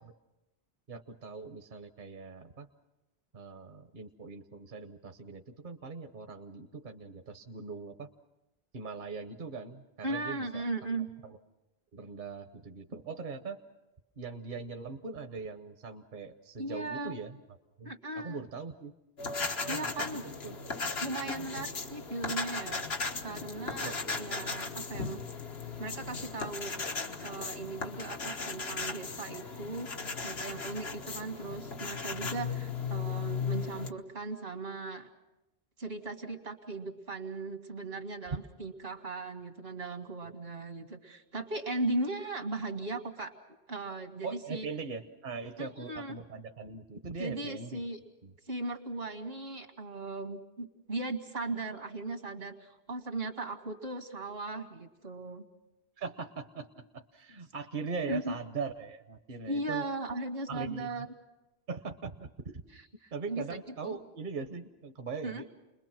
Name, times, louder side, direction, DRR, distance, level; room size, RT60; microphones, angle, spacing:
voice 1, 0.9-2.7 3.3-8.1 8.7-10.6 11.2-11.4 11.9-13.6 14.2-17.4 17.8-18.9 19.6-20.1 20.4-20.6 21.3-21.5 23.8-24.1 40.2-40.3 44.2-47.8 48.2-48.3 56.0-59.8 60.5-61.1 61.7-62.6 63.1-65.5, right 4 dB, 55° right, 6 dB, 1.1 m, -41 dB
voice 2, 10.0-11.1 16.6-17.2 17.8-18.4 19.7-20.2 21.0-22.8 23.2-25.2 25.8-27.0 27.2-29.9 30.2-35.1 35.8-43.3 43.7-44.7 45.6-46.2 47.2-48.0 48.5-55.4 58.1-58.3 59.5-61.1 62.7-64.0 65.2-65.4, right 2 dB, 75° right, 4 dB, 2.3 m, -38 dB
sound 1, 19.2-33.9, left 4 dB, 80° left, 1.6 m, -37 dB
30.0 x 21.5 x 6.1 m, 0.97 s
omnidirectional pair, 1.0 m